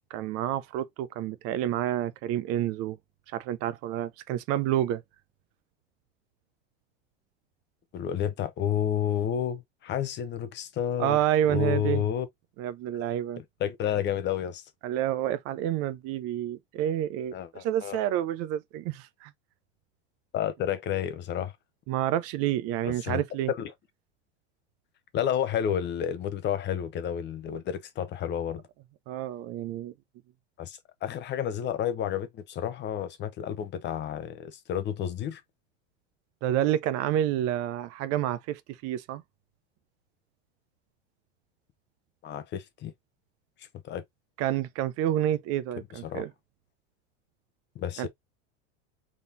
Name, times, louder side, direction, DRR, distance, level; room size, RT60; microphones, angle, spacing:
voice 1, 0.1-3.0 3.3-5.0 11.0-12.0 12.6-13.4 14.8-19.3 21.9-23.5 29.1-29.9 36.4-39.2 44.4-46.3 48.0-48.1, right 12 dB, 45° right, 0.6 m, -29 dB
voice 2, 7.9-11.2 11.5-12.3 13.4-14.6 17.3-18.0 20.3-21.5 22.9-23.2 23.5-23.7 25.1-28.6 30.6-35.4 42.2-42.9 43.6-44.0 46.0-46.2 47.7-48.1, left 9 dB, 30° left, 0.8 m, -30 dB
4.1 x 3.7 x 2.6 m
hypercardioid pair, 110°, 34 cm